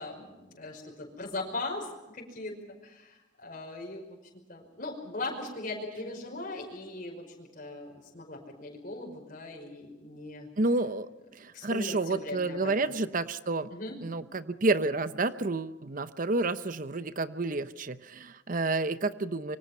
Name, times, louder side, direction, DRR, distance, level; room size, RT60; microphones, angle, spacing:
voice 1, 0.0-10.5 11.5-12.9 13.7-14.0, left 2 dB, 50° left, 0 dB, 5.3 m, -39 dB
voice 2, 10.6-11.1 11.4-13.7 14.0-19.6, right 3 dB, 50° right, 13 dB, 0.8 m, -30 dB
26.5 x 23.5 x 5.6 m, 1.0 s
head